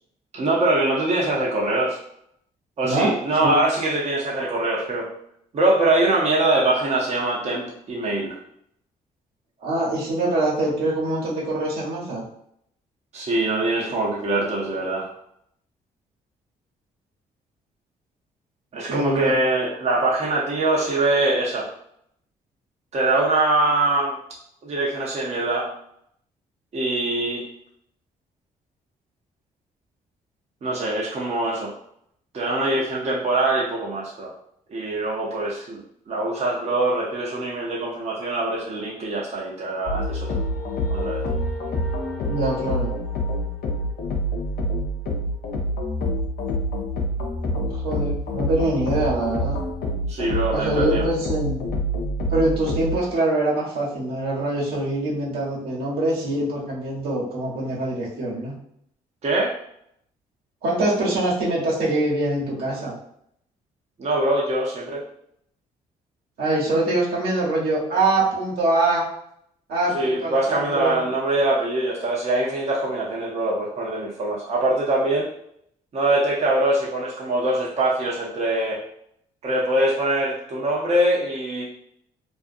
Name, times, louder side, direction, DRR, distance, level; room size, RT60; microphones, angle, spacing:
voice 1, 0.3-2.0 2.8-5.1 5.5-8.4 13.1-15.1 18.7-21.7 22.9-24.2 24.6-25.7 26.7-27.4 30.6-31.7 32.3-34.3 34.7-35.8 36.1-40.4 40.9-41.2 50.1-51.0 59.2-59.5 64.0-65.0 69.9-75.3 75.9-78.8 79.4-81.6, right 2 dB, 45° right, -4 dB, 0.7 m, -23 dB
voice 2, 2.8-3.6 9.6-12.2 18.9-19.3 42.3-42.9 47.5-49.6 50.5-51.7 52.3-58.6 60.6-63.0 66.4-69.1 69.7-71.1, right 2 dB, 75° right, -5 dB, 1.0 m, -24 dB
sound 1, 39.9-53.0, equal, 65° left, 0.6 m, -27 dB
2.5 x 2.3 x 2.5 m, 0.71 s
supercardioid pair, 65°, 16 cm